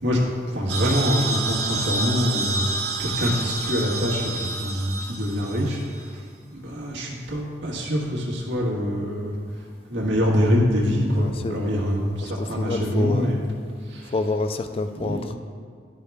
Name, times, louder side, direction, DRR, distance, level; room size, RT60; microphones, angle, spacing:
voice 1, 0.5-2.6 3.0-5.8 6.5-9.3 9.9-13.4 13.9-14.1 14.9-15.3, equal, 75° right, -3 dB, 1.5 m, -24 dB
sound 1, 0.7-6.0, right 2 dB, 60° right, 0.5 m, -29 dB
voice 2, 11.1-11.7 12.2-13.3 14.0-15.4, left 3 dB, 30° left, 9 dB, 0.3 m, -28 dB
11.5 x 4.8 x 3.5 m, 2.1 s
head